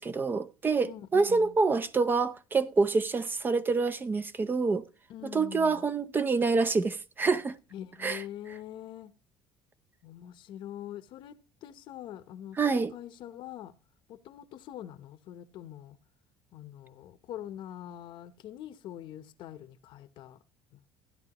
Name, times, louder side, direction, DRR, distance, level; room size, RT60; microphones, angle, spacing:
voice 1, 0.0-4.8 5.2-7.6 8.0-8.2 12.6-12.9, right 4 dB, 20° right, 0.6 m, -27 dB
voice 2, 0.8-1.6 5.1-5.8 7.7-9.1 10.0-13.7 14.1-16.0 16.5-20.4 20.7-20.9, left 11 dB, 60° left, 0.9 m, -44 dB
16.5 x 10.0 x 3.0 m
cardioid pair, 140°, 9 cm